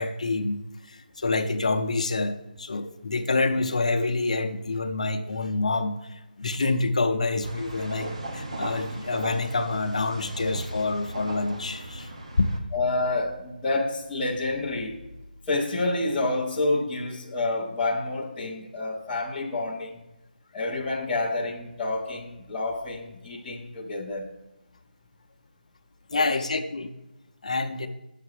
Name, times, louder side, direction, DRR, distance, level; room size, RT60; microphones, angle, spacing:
voice 1, 0.0-12.1 12.4-12.6 26.1-26.9 27.4-27.9, left 3 dB, 45° left, 0.7 m, -27 dB
sound 1, 7.4-12.6, right 1 dB, 40° right, 1.0 m, -37 dB
voice 2, 12.7-15.0 15.5-20.0 20.5-24.3 26.1-26.4, left 2 dB, 5° left, 0.4 m, -28 dB
9.0 x 6.7 x 4.7 m
figure-of-eight pair, 180°, 5 cm